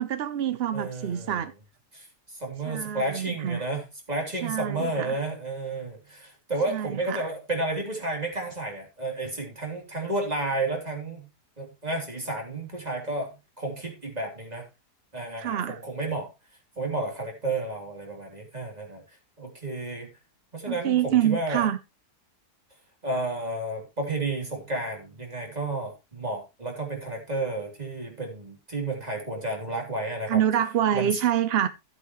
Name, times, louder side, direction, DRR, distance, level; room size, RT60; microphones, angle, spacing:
voice 1, 0.0-1.5 2.7-3.6 4.4-5.1 6.7-7.3 15.4-15.8 20.7-21.8 30.3-31.7, right 10 dB, 65° right, 0.6 m, -26 dB
voice 2, 0.7-1.4 1.9-11.3 11.6-14.6 15.1-16.3 16.8-19.0 19.4-20.1 20.5-21.7 23.0-30.4 30.9-31.1, right 2 dB, 25° right, 3.3 m, -32 dB
14.0 x 8.1 x 3.1 m
omnidirectional pair, 1.7 m